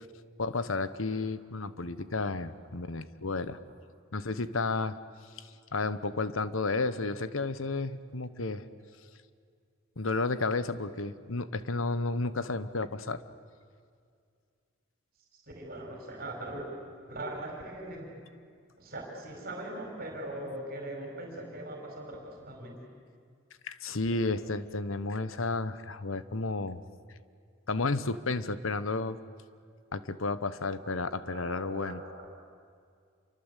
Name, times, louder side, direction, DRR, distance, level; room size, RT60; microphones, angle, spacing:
voice 1, 0.4-3.6 4.1-5.0 5.7-8.6 10.0-13.2 23.6-26.8 27.7-29.2 29.9-32.0, left 3 dB, 80° left, 14 dB, 1.1 m, -32 dB
voice 2, 15.5-16.7 17.1-18.1 18.8-22.8 24.2-24.3 30.6-32.2, right 1 dB, 45° right, 1 dB, 5.0 m, -41 dB
27.5 x 24.5 x 8.3 m, 2.2 s
head